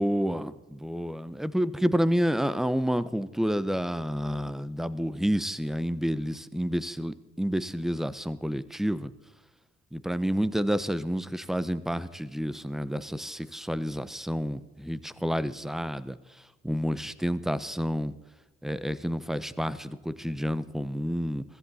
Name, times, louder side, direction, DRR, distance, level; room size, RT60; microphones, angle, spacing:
voice 1, 0.0-9.1 9.9-16.2 16.6-18.1 18.6-21.4, equal, ahead, 15 dB, 0.7 m, -29 dB
16.0 x 14.5 x 4.2 m, 1.1 s
cardioid pair, 90°, 30 cm